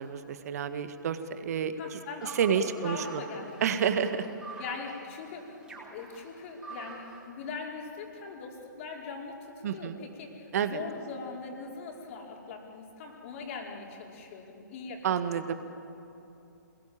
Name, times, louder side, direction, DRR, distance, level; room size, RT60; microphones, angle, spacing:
voice 1, 0.0-1.7 2.4-3.2 3.6-4.3 9.6-10.0 10.5-10.8 15.0-15.5, right 8 dB, 50° right, 10 dB, 1.8 m, -29 dB
voice 2, 1.7-3.6 3.9-4.2 4.6-15.4, left 4 dB, 40° left, 0 dB, 5.0 m, -41 dB
sound 1, 2.2-7.2, right 3 dB, 10° right, 5.0 m, -46 dB
27.0 x 20.5 x 8.9 m, 2.9 s
figure-of-eight pair, 130°, 11 cm